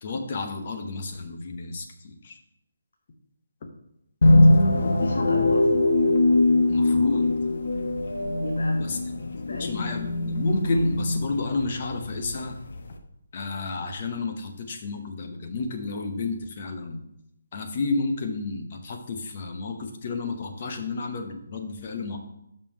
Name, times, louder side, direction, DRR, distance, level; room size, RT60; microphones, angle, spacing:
voice 1, 0.0-2.4 6.7-7.3 8.8-9.0 9.5-12.5 13.3-17.0 17.5-22.2, left 3 dB, 35° left, 5 dB, 0.9 m, -31 dB
sound 1, 4.2-13.0, left 2 dB, 55° left, 0.9 m, -22 dB
voice 2, 4.6-5.9 8.4-8.9 9.3-9.8, left 2 dB, 85° left, 2 dB, 1.1 m, -34 dB
5.4 x 5.2 x 6.3 m, 0.82 s
hypercardioid pair, 170°, 0 cm